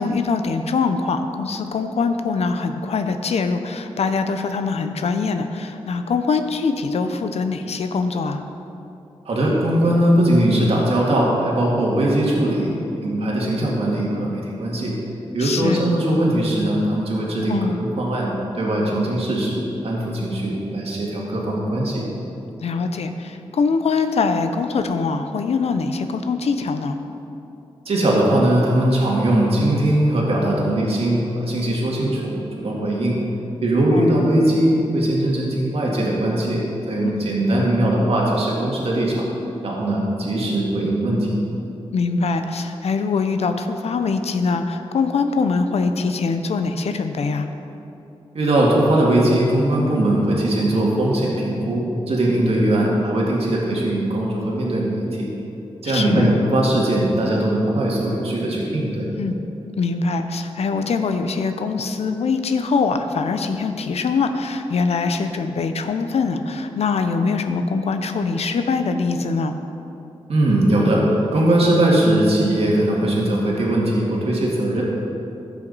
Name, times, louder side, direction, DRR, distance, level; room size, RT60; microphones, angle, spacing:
voice 1, 0.0-8.4 15.4-15.9 17.5-17.8 22.6-27.0 33.9-34.2 37.0-37.3 41.9-47.5 55.8-56.3 59.2-59.4 59.8-69.5, left 4 dB, 75° left, 7 dB, 0.7 m, -23 dB
voice 2, 9.3-12.7 13.0-14.9 15.3-22.0 27.9-33.2 33.6-39.3 39.6-41.4 48.3-55.3 55.8-59.1 70.3-71.0 71.3-74.8, right 1 dB, 70° right, -4 dB, 2.0 m, -20 dB
15.0 x 5.9 x 4.1 m, 2.9 s
cardioid pair, 65°, 11 cm